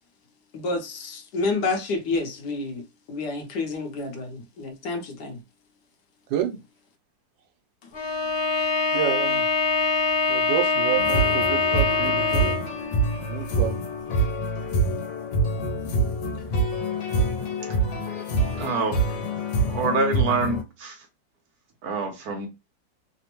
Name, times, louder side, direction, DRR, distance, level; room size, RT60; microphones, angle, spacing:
voice 1, 0.5-5.4 7.8-7.9, left 3 dB, 70° left, 1.3 m, -29 dB
Bowed string instrument, 7.9-12.8, left 4 dB, 40° left, 1.0 m, -23 dB
voice 2, 8.9-9.5 10.3-12.6 13.2-13.8, right 11 dB, 85° right, 1.3 m, -29 dB
sound 1, 11.0-20.6, right 2 dB, 85° left, 1.5 m, -26 dB
voice 3, 18.6-19.0 19.7-21.0 21.8-22.5, right 4 dB, 65° right, 1.1 m, -26 dB
3.4 x 2.1 x 2.9 m
omnidirectional pair, 2.0 m